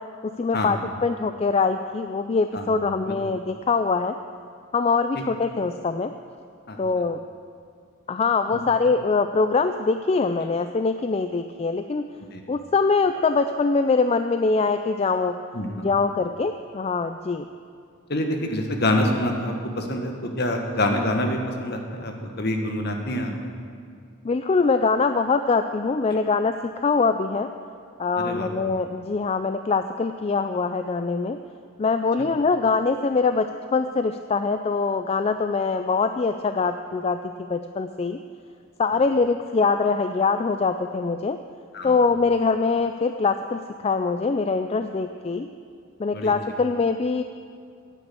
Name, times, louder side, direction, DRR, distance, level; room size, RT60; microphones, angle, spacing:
voice 1, 0.2-4.1 4.7-6.1 6.8-7.2 8.1-12.0 12.5-15.3 15.8-17.5 24.2-26.5 26.8-27.5 28.0-31.4 31.8-33.5 33.7-38.2 38.8-41.4 41.8-45.5 46.0-47.2, left 4 dB, 30° left, 9 dB, 0.3 m, -23 dB
voice 2, 18.1-23.3 28.2-28.5 41.7-42.0 46.1-46.3, left 1 dB, 50° left, 3 dB, 1.4 m, -26 dB
10.5 x 9.0 x 8.4 m, 2.3 s
head